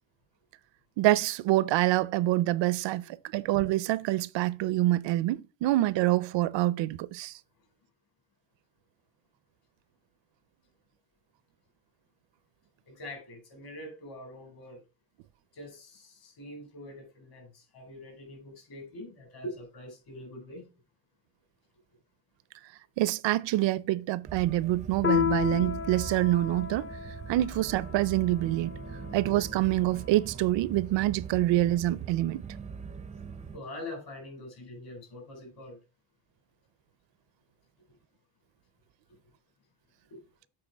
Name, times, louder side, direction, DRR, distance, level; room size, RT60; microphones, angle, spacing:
voice 1, 1.0-3.0 3.3-7.3 23.0-26.9 27.3-28.7 29.1-32.4, right 15 dB, 75° right, 0.5 m, -26 dB
voice 2, 12.9-14.8 15.5-20.7 33.5-35.8 40.1-40.2, left 1 dB, 55° left, 3.7 m, -44 dB
sound 1, 24.2-33.6, right 6 dB, 15° right, 0.4 m, -41 dB
Piano, 25.0-30.0, left 11 dB, 30° left, 0.6 m, -33 dB
7.7 x 4.5 x 4.4 m
cardioid pair, 160°, 45 cm